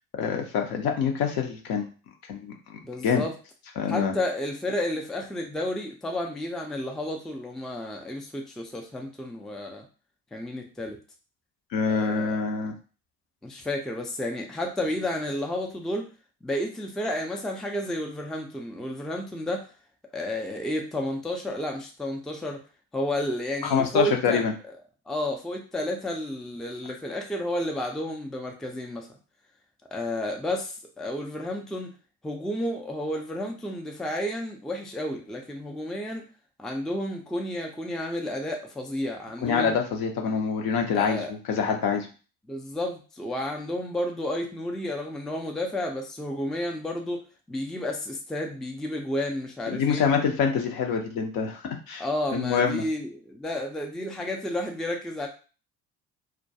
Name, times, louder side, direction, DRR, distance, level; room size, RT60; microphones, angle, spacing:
voice 1, 0.1-1.9 2.3-3.2 3.8-4.1 11.7-12.7 23.6-24.5 39.4-42.1 49.7-51.6 51.9-52.0 52.3-52.8, left 6 dB, 60° left, 2 dB, 0.7 m, -26 dB
voice 2, 2.8-3.3 3.9-9.8 10.3-11.0 11.9-12.4 13.4-16.1 16.4-19.7 20.1-22.6 22.9-24.4 25.1-29.1 29.9-31.9 32.2-36.2 36.6-39.8 40.9-41.3 41.9-42.0 42.5-47.2 47.5-50.0 52.0-55.3, left 1 dB, ahead, 1 dB, 0.4 m, -31 dB
2.3 x 2.2 x 2.7 m, 0.36 s
hypercardioid pair, 55°, 41 cm